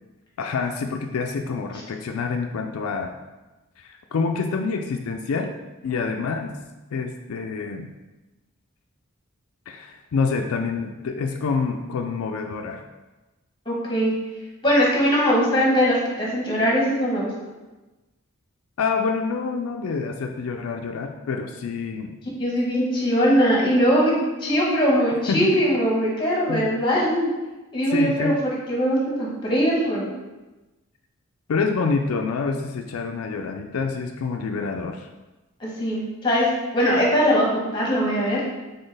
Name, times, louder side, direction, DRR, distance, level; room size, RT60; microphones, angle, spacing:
voice 1, 0.4-3.1 3.8-5.5 5.8-6.6 6.9-7.9 9.7-12.8 18.8-22.1 25.3-25.5 26.5-26.7 27.9-28.3 31.5-35.1, left 4 dB, 85° left, 4 dB, 0.4 m, -27 dB
voice 2, 13.7-14.1 14.6-17.3 22.4-27.3 27.7-30.1 35.6-38.4, equal, 20° left, -3 dB, 1.0 m, -21 dB
4.3 x 3.7 x 3.3 m, 1.1 s
head